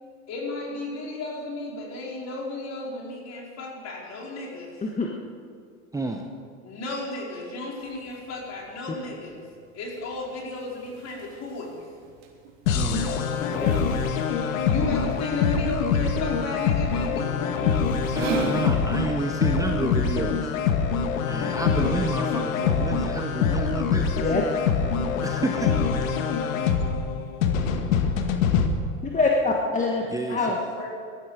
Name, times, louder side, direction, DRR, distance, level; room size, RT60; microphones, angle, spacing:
voice 1, 0.3-4.8 6.6-9.4 9.7-11.8 14.7-17.4 30.3-30.9, left 2 dB, 40° left, -2 dB, 4.7 m, -34 dB
voice 2, 5.9-6.3 12.7-13.2 18.1-20.5 21.3-24.2 25.2-26.0 26.3-26.5 30.1-30.4, right 3 dB, 10° right, 4 dB, 0.8 m, -30 dB
sound 1, 7.8-18.7, right 6 dB, 65° right, 3.4 m, -40 dB
sound 2, 12.7-28.7, left 6 dB, 80° left, 1.6 m, -24 dB
voice 3, 29.0-30.0 30.3-30.6, left 3 dB, 20° left, 0 dB, 1.5 m, -24 dB
18.5 x 13.0 x 5.0 m, 2.1 s
hypercardioid pair, 110°, 40 cm